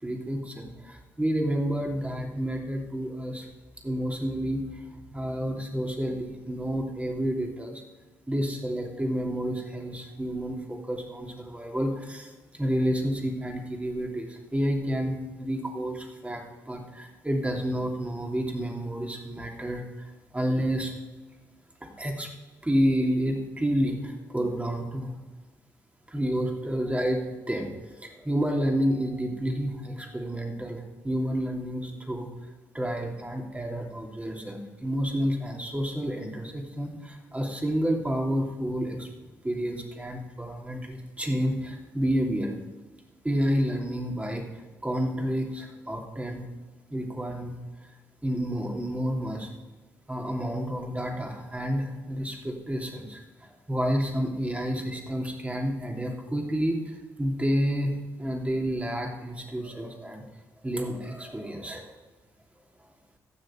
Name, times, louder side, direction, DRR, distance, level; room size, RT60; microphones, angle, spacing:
voice 1, 0.0-3.5 3.8-7.8 8.3-20.9 22.0-22.3 22.6-25.1 26.1-32.3 32.7-39.1 39.4-42.5 43.2-44.4 44.8-46.4 46.9-47.9 48.2-49.5 50.1-60.3 60.6-61.9, equal, 15° right, 1 dB, 2.9 m, -30 dB
15.0 x 6.5 x 5.2 m, 1.2 s
hypercardioid pair, 45°, 9 cm